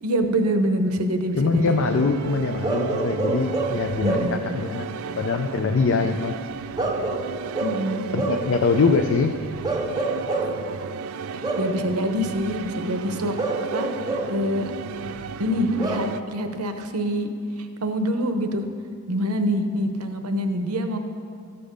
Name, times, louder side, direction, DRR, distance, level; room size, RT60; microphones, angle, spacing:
voice 1, 0.0-1.8 4.0-4.4 7.6-8.0 11.3-13.3 13.7-13.9 14.3-14.7 15.4-17.3 17.6-18.7 19.1-21.0, equal, 90° right, 7 dB, 0.8 m, -25 dB
voice 2, 1.4-6.3 8.1-9.3, left 4 dB, 60° left, 5 dB, 0.4 m, -23 dB
sound 1, 1.5-16.2, right 6 dB, 75° right, 0.3 m, -34 dB
Bark / Livestock farm animals working animals, 2.6-4.5 6.8-8.5 9.6-10.6 11.4-11.8 13.4-14.4 15.8-16.2, right 2 dB, 15° right, 0.6 m, -27 dB
13.5 x 7.0 x 5.1 m, 2.3 s
head